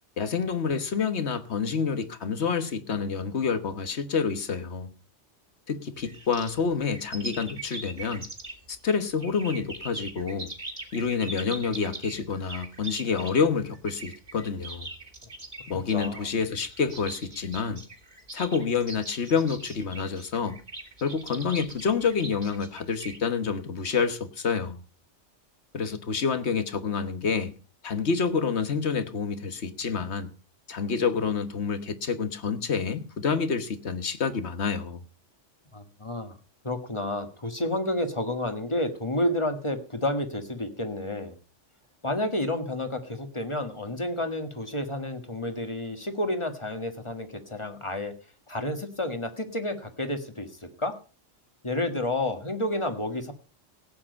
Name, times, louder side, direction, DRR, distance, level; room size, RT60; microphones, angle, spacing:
voice 1, 0.2-4.9 5.7-8.2 8.7-10.5 10.9-14.9 15.7-17.8 18.3-20.6 21.0-24.8 25.7-27.5 27.8-30.3 30.7-35.0, left 5 dB, 65° left, 1.5 m, -28 dB
sound 1, 6.0-8.8 9.2-23.2, right 2 dB, 35° right, 2.5 m, -41 dB
voice 2, 15.9-16.3 35.7-36.4 36.6-41.3 42.0-48.1 48.5-50.9 51.6-53.3, left 1 dB, 25° left, 1.6 m, -30 dB
17.0 x 8.7 x 5.3 m
omnidirectional pair, 1.2 m